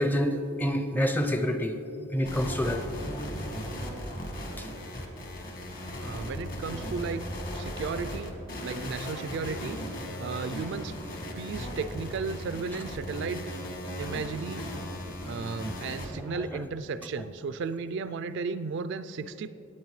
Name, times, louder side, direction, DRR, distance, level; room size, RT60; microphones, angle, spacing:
voice 1, 0.0-1.8 2.1-2.9 4.6-4.7 16.1-16.6, equal, 10° left, 7 dB, 0.5 m, -28 dB
sound 1, 2.2-16.1, equal, 40° left, 1.5 m, -37 dB
voice 2, 6.0-7.2 7.5-8.4 8.6-10.9 11.4-13.4 14.0-14.7 15.2-19.5, right 4 dB, 55° right, 12 dB, 0.3 m, -35 dB
18.5 x 8.8 x 3.2 m, 2.7 s
head